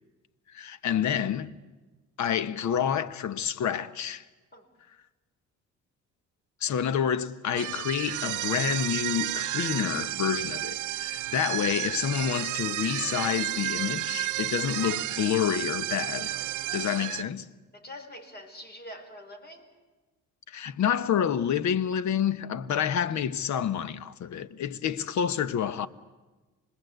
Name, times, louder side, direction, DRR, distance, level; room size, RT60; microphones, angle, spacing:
voice 1, 0.5-1.6 2.2-4.2 6.6-16.4 16.7-17.5 20.5-25.9, left 9 dB, 70° left, 1.1 m, -28 dB
sound 1, 7.6-17.2, right 16 dB, 80° right, 0.7 m, -32 dB
voice 2, 17.7-19.7, left 1 dB, 35° left, 4.7 m, -44 dB
28.0 x 20.5 x 8.0 m
cardioid pair, 90°, 30 cm